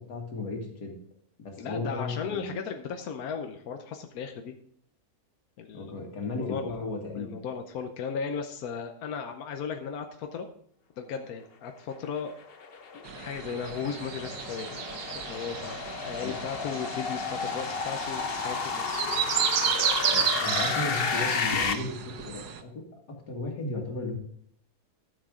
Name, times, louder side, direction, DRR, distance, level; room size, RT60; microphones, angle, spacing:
voice 1, 0.1-1.0 1.4-2.5 5.7-7.3 16.2-16.3 20.1-22.8 23.3-24.2, left 3 dB, 85° left, 1 dB, 2.6 m, -35 dB
voice 2, 1.6-4.6 5.6-6.0 6.4-10.5 11.0-12.3 12.9-14.8 15.1-18.9, left 6 dB, 70° left, 5 dB, 1.2 m, -36 dB
sound 1, 12.2-21.7, left 5 dB, 45° left, 0.9 m, -32 dB
sound 2, 13.0-22.6, right 8 dB, 85° right, 1.4 m, -32 dB
12.5 x 7.3 x 3.7 m, 0.65 s
omnidirectional pair, 1.7 m